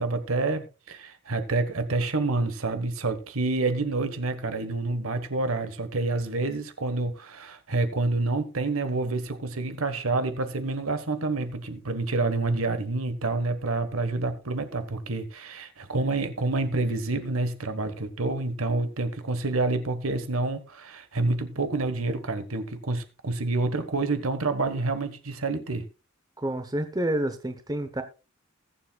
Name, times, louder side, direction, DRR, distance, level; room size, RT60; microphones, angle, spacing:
voice 1, 0.0-25.9, right 3 dB, 70° right, 1.3 m, -28 dB
voice 2, 26.4-28.0, right 1 dB, 15° right, 0.8 m, -29 dB
21.0 x 7.4 x 2.3 m
head